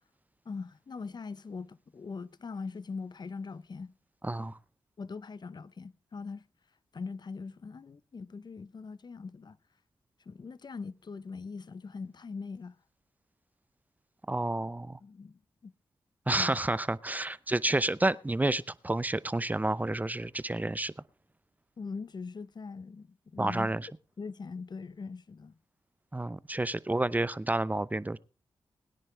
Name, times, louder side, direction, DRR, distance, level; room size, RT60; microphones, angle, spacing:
voice 1, 0.5-3.9 5.0-6.4 6.9-9.6 10.3-12.8 15.0-15.7 16.3-16.6 21.8-23.7 24.2-25.6, left 4 dB, 50° left, 0.8 m, -41 dB
voice 2, 4.2-4.6 14.3-15.0 16.3-20.9 23.4-23.9 26.1-28.2, right 2 dB, 15° right, 0.7 m, -30 dB
21.5 x 9.9 x 3.4 m
cardioid pair, 55°, 9 cm